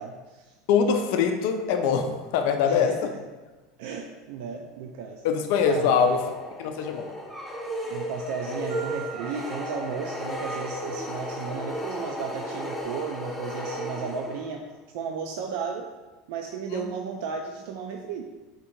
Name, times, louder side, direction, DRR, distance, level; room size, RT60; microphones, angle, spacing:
voice 1, 0.0-0.5 2.6-3.0 3.8-5.2 5.7-6.1 7.9-14.6 14.9-15.9 16.3-18.2, right 5 dB, 70° right, 2 dB, 0.4 m, -34 dB
voice 2, 0.7-3.1 5.2-6.2 6.6-7.1 16.7-16.8, left 6 dB, 70° left, 5 dB, 0.4 m, -23 dB
sound 1, 5.6-14.7, equal, ahead, 0.6 m, -35 dB
sound 2, 7.8-12.8, left 2 dB, 35° left, 0.8 m, -48 dB
Marimba xylophone, 8.7-10.9, right 10 dB, 40° right, 0.8 m, -44 dB
3.7 x 2.6 x 4.4 m, 1.2 s
supercardioid pair, 130°, 0 cm